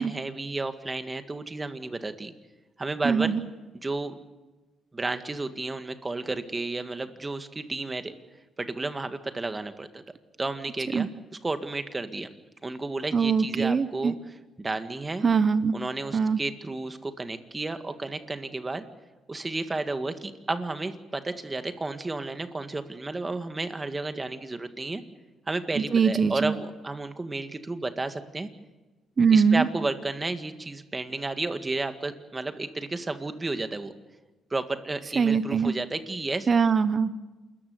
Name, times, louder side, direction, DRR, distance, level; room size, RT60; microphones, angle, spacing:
voice 1, 0.0-2.3 2.8-3.3 3.8-4.2 4.9-8.1 8.6-10.0 10.4-11.1 11.4-12.3 12.6-14.2 14.6-15.3 15.7-18.9 19.3-25.0 25.5-28.5 29.3-33.9 34.5-36.5, right 2 dB, 20° right, 9 dB, 1.8 m, -32 dB
voice 2, 3.0-3.5 10.9-11.1 13.1-14.1 15.2-15.7 16.1-16.4 25.8-26.6 29.2-29.7 35.1-35.8 36.5-37.1, right 5 dB, 40° right, 13 dB, 0.9 m, -22 dB
28.0 x 14.0 x 9.6 m, 1.2 s
cardioid pair, 90°, 0 cm